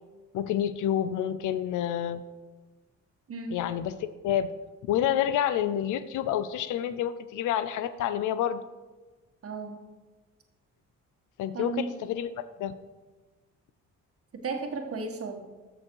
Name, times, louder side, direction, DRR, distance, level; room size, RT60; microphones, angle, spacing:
voice 1, 0.3-2.2 3.5-4.5 4.8-8.6 11.4-12.7, left 10 dB, 85° left, 14 dB, 0.7 m, -28 dB
voice 2, 3.3-3.6 9.4-9.8 11.5-11.9 14.3-15.4, right 4 dB, 50° right, 3 dB, 1.8 m, -34 dB
14.0 x 6.3 x 4.7 m, 1.2 s
cardioid pair, 90°, 30 cm